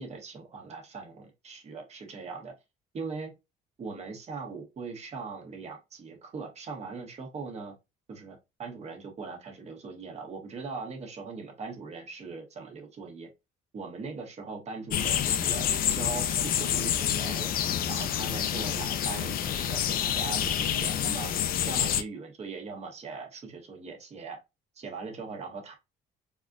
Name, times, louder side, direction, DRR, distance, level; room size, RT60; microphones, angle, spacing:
voice 1, 0.0-2.5 2.9-3.3 3.8-7.7 8.1-13.3 13.7-17.5 17.9-21.3 21.7-24.4 24.7-25.7, right 4 dB, 40° right, 1.2 m, -40 dB
sound 1, 14.9-22.0, left 9 dB, 60° left, 0.5 m, -28 dB
4.1 x 2.5 x 2.4 m
cardioid pair, 110°, 17 cm